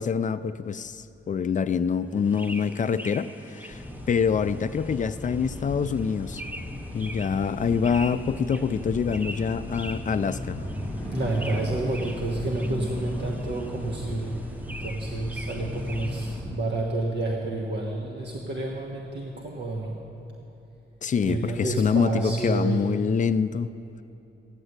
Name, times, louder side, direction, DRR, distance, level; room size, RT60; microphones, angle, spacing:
voice 1, 0.0-6.4 6.9-10.6 21.0-23.7, left 6 dB, 40° left, 12 dB, 0.4 m, -26 dB
sound 1, 2.1-16.4, equal, 10° right, 0.8 m, -43 dB
sound 2, 3.7-16.5, left 1 dB, 10° left, 4.0 m, -36 dB
voice 2, 11.1-14.4 14.6-20.0 21.2-22.9, right 2 dB, 55° right, -1 dB, 1.3 m, -29 dB
14.5 x 10.0 x 8.1 m, 2.9 s
wide cardioid pair, 130°, 21 cm